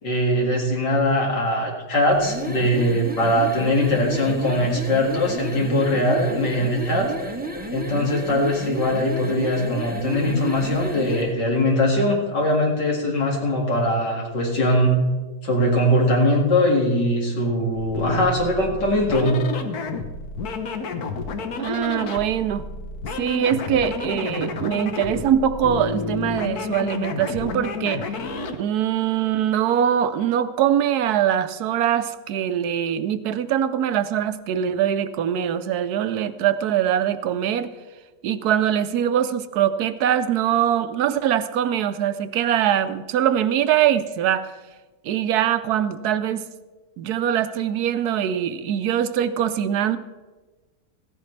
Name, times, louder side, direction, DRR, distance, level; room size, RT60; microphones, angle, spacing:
voice 1, 0.0-7.1 7.7-15.0 15.4-19.4, left 1 dB, 75° left, -1 dB, 2.8 m, -21 dB
sound 1, 2.1-11.3, right 2 dB, 10° right, 0.6 m, -32 dB
sound 2, 17.7-28.6, left 4 dB, 60° left, 1.4 m, -30 dB
voice 2, 21.6-22.6 23.2-28.2 28.6-37.7 38.2-44.5 45.0-46.4 47.0-50.0, right 10 dB, 70° right, 11 dB, 1.1 m, -22 dB
15.5 x 14.5 x 3.3 m, 1.2 s
omnidirectional pair, 1.9 m